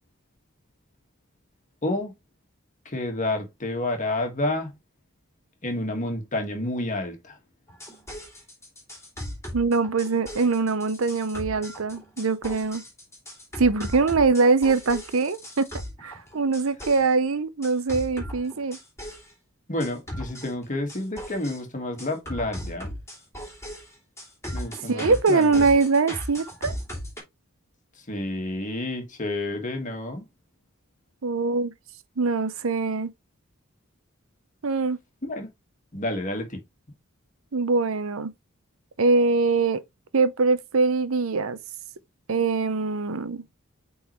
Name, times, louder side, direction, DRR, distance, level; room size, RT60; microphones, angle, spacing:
voice 1, 1.8-2.1 2.8-4.7 5.6-7.4 19.7-22.9 24.5-25.7 28.1-30.3 35.2-35.5 35.9-36.6, left 1 dB, 35° left, 1.8 m, -29 dB
sound 1, 7.7-17.1 17.6-19.3 19.8-21.6 22.0-27.2, equal, 15° left, 3.1 m, -37 dB
voice 2, 9.5-12.8 13.6-15.7 16.0-18.8 24.9-26.7 31.2-31.7 32.2-33.1 34.6-35.0 37.5-38.3 39.0-39.8 40.1-41.6 42.3-43.4, right 4 dB, 70° right, 0.7 m, -23 dB
8.5 x 4.0 x 3.1 m
head